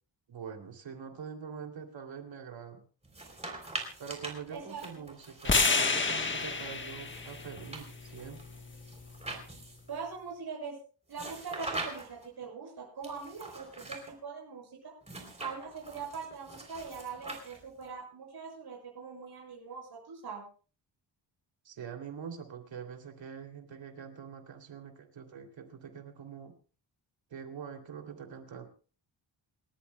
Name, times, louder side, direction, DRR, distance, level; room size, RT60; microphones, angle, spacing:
voice 1, 0.3-2.8 4.0-8.4 21.6-26.5 27.3-28.7, right 7 dB, 75° right, 4 dB, 3.0 m, -44 dB
sound 1, 3.0-6.5 7.1-9.9 11.1-12.3 13.0-14.1 15.0-17.9, right 2 dB, 15° right, 3.5 m, -43 dB
voice 2, 4.5-5.0 9.9-10.8 11.1-14.9 15.4-20.5, right 5 dB, 55° right, -2 dB, 6.9 m, -42 dB
sound 2, 5.4-9.6, left 4 dB, 25° left, 1.3 m, -31 dB
28.5 x 14.0 x 2.3 m, 0.38 s
wide cardioid pair, 170°, 45 cm